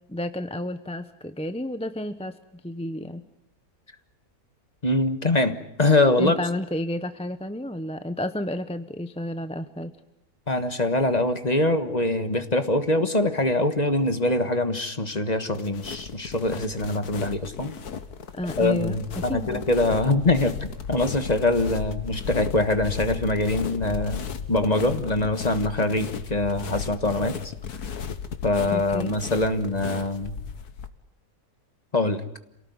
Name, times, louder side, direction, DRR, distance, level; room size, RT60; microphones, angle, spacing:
voice 1, 0.1-2.3 2.6-3.2 6.2-9.9 18.3-19.7 28.7-29.1, left 1 dB, 5° left, 10 dB, 0.7 m, -31 dB
voice 2, 4.8-6.4 10.5-17.7 18.6-27.5 28.4-30.4 31.9-32.2, left 2 dB, 30° left, 9 dB, 1.5 m, -24 dB
sound 1, 15.5-30.9, left 6 dB, 85° left, 1.8 m, -35 dB
27.5 x 18.5 x 9.5 m, 0.83 s
omnidirectional pair, 1.6 m